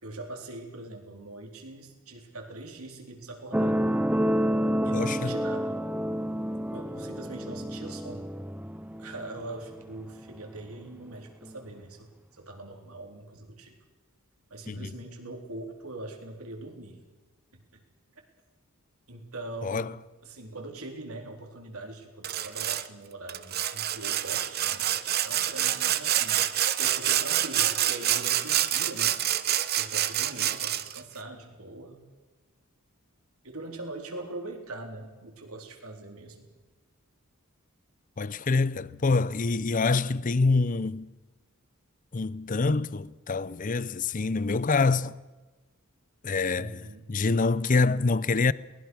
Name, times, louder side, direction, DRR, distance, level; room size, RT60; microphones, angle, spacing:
voice 1, 0.0-3.9 4.8-5.8 6.7-8.3 8.9-12.1 12.4-13.8 14.5-17.0 17.5-17.8 19.1-20.0 20.2-24.9 25.2-26.5 26.8-29.3 29.8-32.0 33.4-36.5 46.5-47.1, right 2 dB, 80° right, 4.1 m, -42 dB
sound 1, 3.5-10.6 11.4-11.5, equal, 5° right, 0.6 m, -29 dB
voice 2, 4.9-5.4 14.7-14.9 19.6-19.9 38.2-41.1 42.1-45.2 46.2-48.5, left 3 dB, 35° left, 0.6 m, -26 dB
Sawing, 22.2-22.9 23.3-31.0, right 11 dB, 45° right, 0.9 m, -27 dB
23.0 x 20.5 x 6.4 m
head